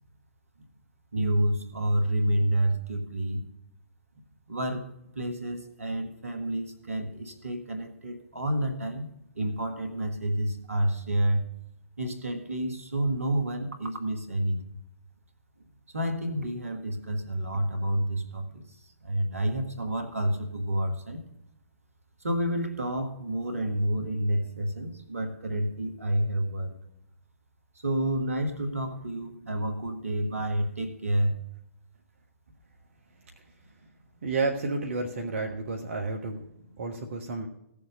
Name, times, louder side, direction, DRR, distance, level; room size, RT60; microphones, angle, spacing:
voice 1, 1.1-3.5 4.5-9.1 9.3-11.5 12.0-14.6 15.9-21.2 22.2-26.8 27.8-31.4 36.6-36.9, right 1 dB, 80° right, 6 dB, 1.8 m, -29 dB
voice 2, 34.2-36.4 36.8-37.5, right 3 dB, 60° right, 2 dB, 1.3 m, -31 dB
16.0 x 7.1 x 5.2 m, 0.86 s
figure-of-eight pair, 120°, 8 cm